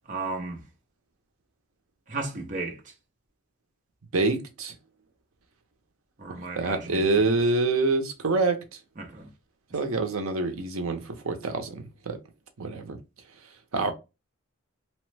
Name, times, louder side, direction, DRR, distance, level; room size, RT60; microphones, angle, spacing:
voice 1, 0.1-0.6 2.1-2.8 6.2-7.0 9.0-9.3, right 3 dB, 35° right, 0.6 m, -34 dB
voice 2, 4.1-4.7 6.6-8.6 9.7-12.2 12.6-13.0 13.7-13.9, right 3 dB, 75° right, 0.6 m, -26 dB
2.9 x 2.1 x 3.2 m
head